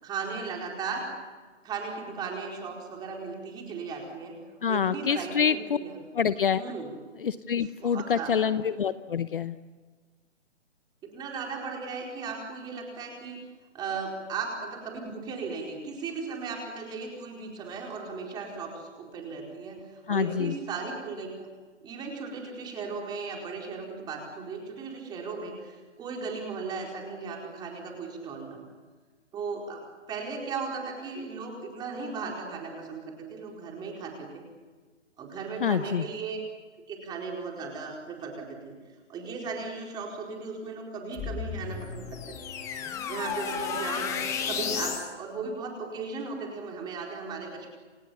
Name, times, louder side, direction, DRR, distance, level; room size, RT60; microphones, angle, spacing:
voice 1, 0.0-1.0 1.6-4.4 4.7-6.0 6.5-6.9 7.8-8.5 11.0-13.4 13.7-21.5 21.8-28.7 29.3-29.8 30.1-34.4 35.2-36.4 36.9-38.8 39.1-42.3 43.1-44.1 44.5-47.7, right 4 dB, 10° right, 0 dB, 4.5 m, -36 dB
voice 2, 4.6-5.8 6.1-6.6 7.2-9.6 20.1-20.5 35.6-36.1, left 7 dB, 45° left, 13 dB, 0.9 m, -26 dB
sound 1, 41.1-45.1, left 7 dB, 10° left, 1.3 m, -33 dB
29.0 x 26.0 x 7.2 m, 1.4 s
hypercardioid pair, 160°, 37 cm